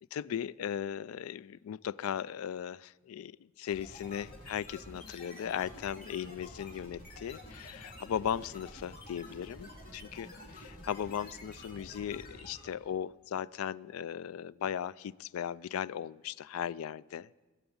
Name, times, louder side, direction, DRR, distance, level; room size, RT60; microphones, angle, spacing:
voice 1, 0.1-17.3, left 9 dB, 90° left, 20 dB, 0.3 m, -37 dB
sound 1, 3.7-12.8, left 1 dB, 45° left, 2.5 m, -49 dB
20.0 x 7.0 x 7.1 m, 1.3 s
head